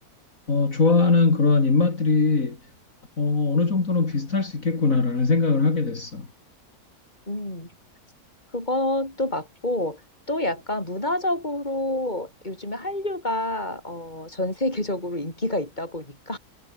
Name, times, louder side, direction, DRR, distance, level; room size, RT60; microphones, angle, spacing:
voice 1, 0.5-2.6 3.2-6.3, left 4 dB, 60° left, 3.4 m, -21 dB
voice 2, 7.3-7.7 8.5-10.0 10.3-16.4, left 1 dB, 30° left, 6.5 m, -28 dB
omnidirectional pair, 1.6 m